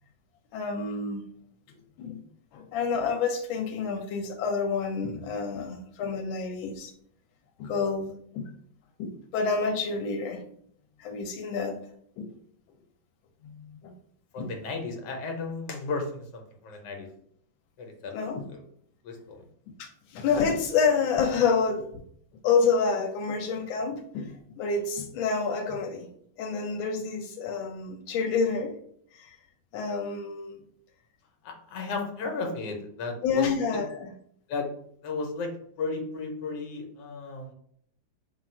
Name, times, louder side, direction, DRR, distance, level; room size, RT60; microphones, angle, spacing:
voice 1, 0.5-1.3 2.0-2.2 2.5-6.9 7.6-8.5 9.0-10.4 11.0-11.8 12.2-12.3 13.4-13.9 14.4-14.5 18.1-18.5 19.8-21.9 22.4-26.1 26.4-28.7 29.1-29.4 29.7-30.6 33.2-34.1, left 5 dB, 85° left, 4 dB, 1.3 m, -28 dB
voice 2, 14.3-17.1 17.8-18.1 18.5-18.6 19.0-19.4 31.4-33.8 34.5-34.7 35.0-35.5 35.8-37.5, left 3 dB, 70° left, 3 dB, 1.3 m, -34 dB
3.7 x 2.3 x 4.3 m, 0.67 s
omnidirectional pair, 2.1 m